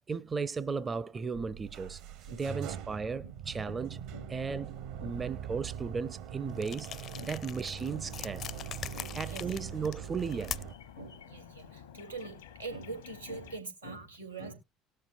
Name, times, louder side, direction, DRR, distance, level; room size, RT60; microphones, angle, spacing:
voice 1, 0.1-2.0 2.3-4.0 4.3-8.4 9.1-10.6, right 5 dB, 25° right, 0.5 m, -36 dB
sound 1, 1.3-10.7, right 9 dB, 60° right, 0.9 m, -42 dB
sound 2, 6.6-10.9, left 9 dB, 45° left, 0.5 m, -43 dB
sound 3, 7.7-13.6, left 9 dB, 70° left, 0.8 m, -52 dB
voice 2, 8.9-9.6 10.9-14.5, right 3 dB, 90° right, 2.3 m, -44 dB
19.0 x 6.5 x 2.4 m
figure-of-eight pair, 60°, 0 cm